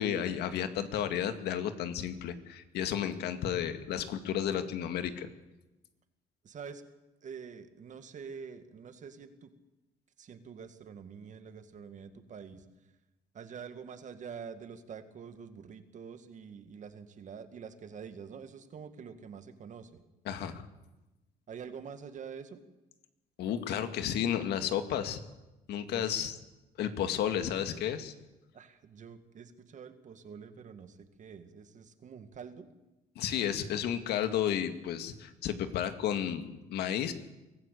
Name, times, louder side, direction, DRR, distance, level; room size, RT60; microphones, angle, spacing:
voice 1, 0.0-5.3 20.3-20.6 23.4-25.2 25.7-26.4 26.8-28.1 33.2-37.1, left 9 dB, 75° left, 9 dB, 2.0 m, -32 dB
voice 2, 6.4-6.8 7.2-9.5 10.2-12.6 13.3-20.0 21.5-22.6 25.9-26.2 28.5-32.7, right 6 dB, 45° right, 9 dB, 2.1 m, -46 dB
23.0 x 14.5 x 8.5 m, 1.0 s
cardioid pair, 110°, 17 cm